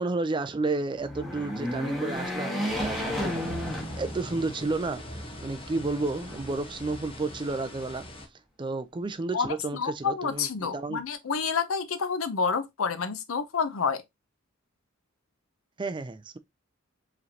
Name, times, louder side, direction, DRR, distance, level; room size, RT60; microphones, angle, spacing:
voice 1, 0.0-8.1 8.6-10.5 10.7-11.0 15.8-16.4, right 3 dB, 25° right, 0.4 m, -32 dB
sound 1, 0.9-4.5 5.0-5.1 6.2-7.0, equal, ahead, 1.2 m, -32 dB
sound 2, 2.6-8.3, equal, 25° left, 1.0 m, -41 dB
voice 2, 9.3-14.0, left 5 dB, 85° left, 0.7 m, -29 dB
4.9 x 3.2 x 2.8 m
head